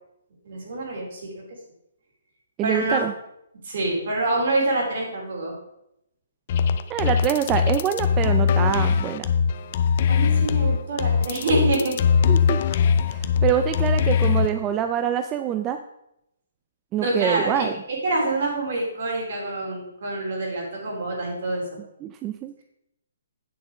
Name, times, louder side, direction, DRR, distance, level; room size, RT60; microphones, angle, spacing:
voice 1, 0.5-1.4 2.6-3.0 3.6-5.5 10.1-12.0 17.0-17.7 18.0-21.8, right 2 dB, 55° right, -1 dB, 3.6 m, -26 dB
voice 2, 2.6-3.1 6.9-9.3 12.3-12.6 13.1-15.8 16.9-17.7 22.0-22.6, right 10 dB, 20° right, 8 dB, 0.4 m, -25 dB
sound 1, 6.5-14.5, left 7 dB, 40° left, 0.5 m, -21 dB
8.7 x 6.8 x 4.9 m, 0.81 s
hypercardioid pair, 160°, 0 cm